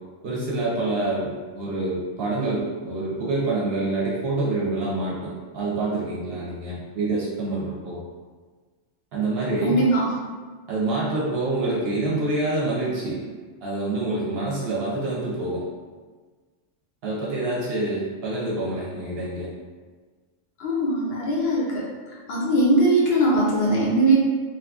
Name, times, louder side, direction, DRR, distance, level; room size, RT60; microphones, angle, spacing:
voice 1, 0.2-8.0 9.1-9.8 10.7-13.2 13.6-15.6 17.0-19.5, right 2 dB, 60° right, -5 dB, 0.7 m, -26 dB
voice 2, 9.6-10.0 20.6-21.8 22.3-24.1, right 1 dB, 60° left, -5 dB, 0.7 m, -20 dB
2.8 x 2.4 x 2.3 m, 1.4 s
omnidirectional pair, 1.3 m